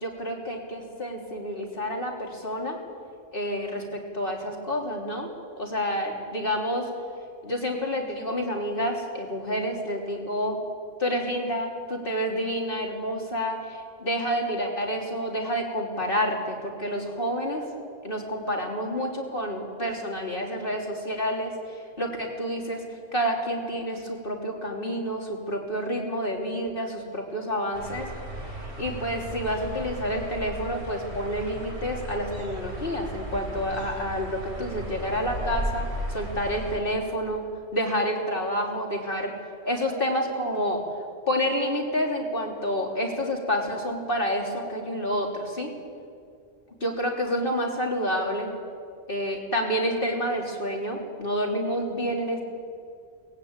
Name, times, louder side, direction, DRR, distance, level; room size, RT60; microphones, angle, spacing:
voice 1, 0.0-2.8 3.3-5.3 5.6-6.9 7.4-10.6 11.0-17.6 18.0-22.8 23.1-28.1 28.8-35.8 36.1-37.4 37.7-39.3 39.6-40.8 41.3-45.7 46.8-48.5 49.1-52.4, equal, 50° left, 0 dB, 3.5 m, -29 dB
sound 1, 27.7-36.8, right 1 dB, 65° right, 3.9 m, -35 dB
23.0 x 19.0 x 8.9 m, 2.3 s
omnidirectional pair, 1.2 m